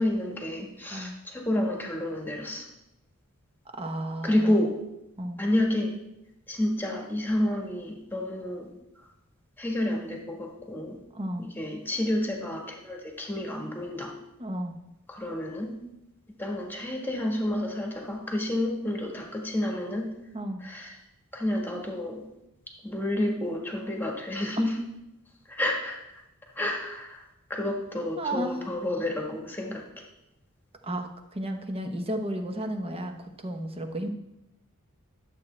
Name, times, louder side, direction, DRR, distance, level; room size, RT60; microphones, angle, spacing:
voice 1, 0.0-2.7 4.2-4.8 5.4-5.9 6.5-8.7 9.6-11.0 11.4-14.1 15.1-15.8 16.4-20.1 20.6-20.9 21.3-22.3 22.8-24.8 25.5-26.0 26.5-27.2 27.5-30.0, left 1 dB, 10° left, 0 dB, 1.4 m, -29 dB
voice 2, 3.8-4.6 5.2-5.4 11.1-11.5 14.4-14.7 20.3-20.6 28.2-28.7 30.8-34.1, right 1 dB, 25° right, 5 dB, 0.9 m, -33 dB
11.5 x 7.5 x 3.3 m, 0.89 s
head